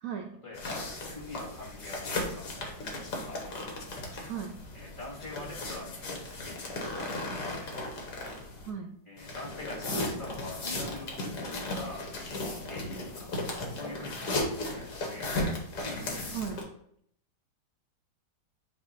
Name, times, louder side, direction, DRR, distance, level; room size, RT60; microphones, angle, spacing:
voice 1, 0.4-2.5 3.2-3.4 4.7-7.6 9.1-12.1 12.7-15.3 15.8-16.3, left 2 dB, 20° left, -5 dB, 2.5 m, -44 dB
sound 1, 0.5-8.7 9.2-16.6, left 2 dB, 75° left, 1.8 m, -36 dB
voice 2, 8.7-9.0 16.3-16.6, right 7 dB, 65° right, 4 dB, 0.9 m, -36 dB
8.4 x 3.1 x 3.9 m, 0.68 s
omnidirectional pair, 1.8 m